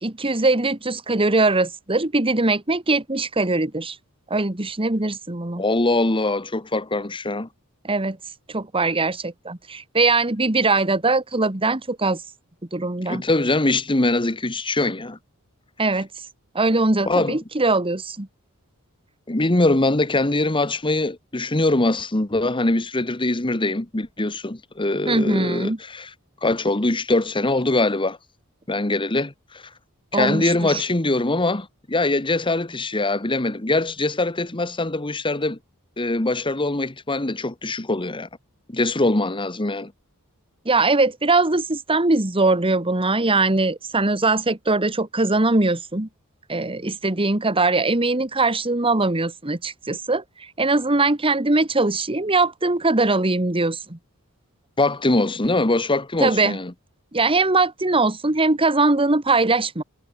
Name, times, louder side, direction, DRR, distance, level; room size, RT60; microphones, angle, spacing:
voice 1, 0.0-3.9 4.3-5.6 7.8-8.2 8.5-12.2 12.7-13.2 15.8-16.1 16.5-18.3 25.1-25.8 30.1-30.8 40.6-46.1 46.5-50.2 50.6-54.0 56.2-56.6 57.1-59.8, right 3 dB, 25° right, 1.7 m, -21 dB
voice 2, 5.6-7.5 13.1-15.2 17.1-17.4 19.3-26.1 26.4-28.2 28.7-29.6 30.1-35.6 36.0-38.3 38.7-39.9 54.8-56.7, left 2 dB, 20° left, 1.4 m, -22 dB
head